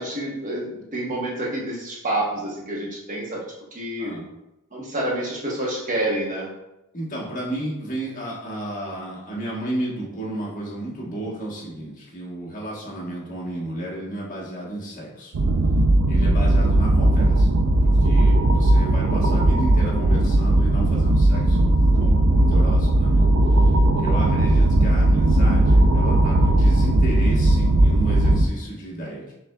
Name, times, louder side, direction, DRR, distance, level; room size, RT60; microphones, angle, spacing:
voice 1, 0.0-3.4 3.7-4.1 4.7-6.5, right 1 dB, 35° right, -3 dB, 0.9 m, -28 dB
voice 2, 6.9-15.3 16.1-17.5 17.8-29.3, right 1 dB, 35° left, -5 dB, 1.1 m, -33 dB
sound 1, 15.3-28.5, right 1 dB, 60° right, 0.4 m, -17 dB
5.9 x 3.3 x 2.3 m, 0.90 s
head